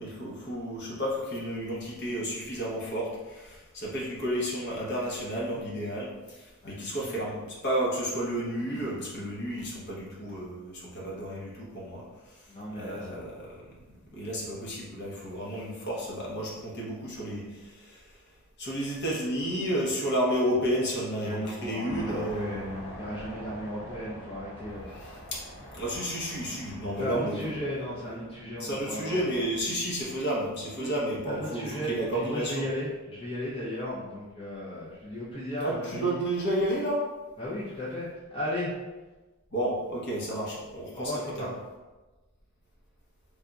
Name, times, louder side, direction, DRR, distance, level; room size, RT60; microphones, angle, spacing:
voice 1, 0.0-13.7 14.1-18.2 18.6-22.8 24.9-25.4 25.7-27.6 28.6-32.6 35.6-37.0 39.5-41.1 41.4-41.5, right 1 dB, 50° left, -4 dB, 0.9 m, -32 dB
voice 2, 6.6-7.2 8.7-8.9 12.5-13.3 21.2-24.9 27.0-29.2 30.8-30.9 31.3-36.2 37.4-38.8 40.9-41.6, left 1 dB, 25° left, -8 dB, 0.6 m, -35 dB
sound 1, 21.8-29.8, equal, 85° left, 1.4 m, -45 dB
3.4 x 2.3 x 3.9 m, 1.2 s
head